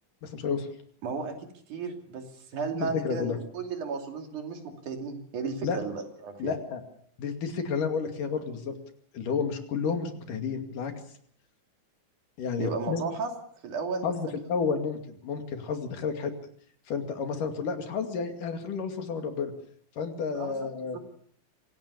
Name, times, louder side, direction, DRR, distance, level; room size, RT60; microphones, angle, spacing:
voice 1, 0.2-0.7 2.7-3.4 5.6-5.8 6.4-6.8 7.2-8.7 9.1-10.9 12.4-13.1 14.0-16.3 16.9-19.5 20.0-21.0, left 5 dB, 85° left, 5 dB, 4.0 m, -31 dB
voice 2, 1.0-1.4 1.7-2.3 2.5-6.5 12.6-13.3 13.6-14.1 20.4-21.0, right 4 dB, 70° right, 4 dB, 4.2 m, -34 dB
25.5 x 17.0 x 6.9 m, 0.62 s
omnidirectional pair, 3.7 m